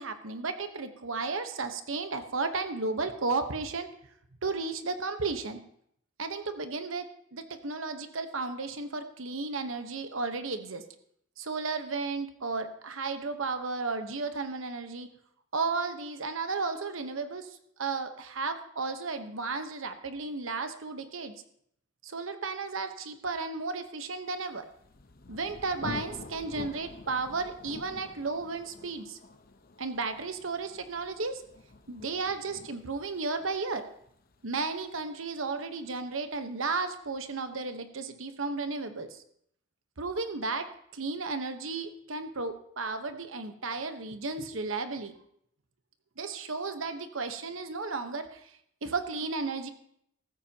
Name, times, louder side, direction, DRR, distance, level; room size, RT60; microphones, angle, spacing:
voice 1, 0.0-3.9 4.4-5.6 6.2-7.0 7.3-10.8 11.4-15.1 15.5-21.3 22.0-24.7 25.3-29.2 29.8-31.4 31.9-33.9 34.4-39.2 40.0-40.7 40.9-45.1 46.2-48.4 48.8-49.7, right 4 dB, 90° right, 8 dB, 1.1 m, -34 dB
Thunder, 24.5-36.0, left 2 dB, 50° left, 0.9 m, -47 dB
15.0 x 14.0 x 2.9 m, 0.69 s
head